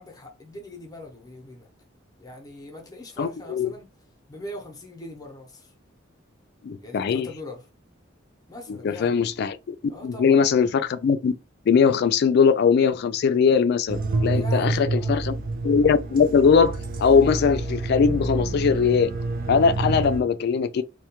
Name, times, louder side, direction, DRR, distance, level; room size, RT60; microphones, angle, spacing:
voice 1, 0.0-1.7 2.2-3.9 4.3-5.7 6.8-7.6 8.5-9.1 9.9-10.4 14.3-15.2, left 1 dB, 20° left, 0.6 m, -41 dB
voice 2, 3.2-3.7 6.6-7.3 8.7-9.8 10.0-11.3 11.7-15.3 15.6-19.1 19.5-20.8, left 6 dB, 55° left, 0.3 m, -20 dB
sound 1, 13.9-20.2, right 2 dB, 45° right, 0.4 m, -28 dB
2.2 x 2.1 x 2.8 m
head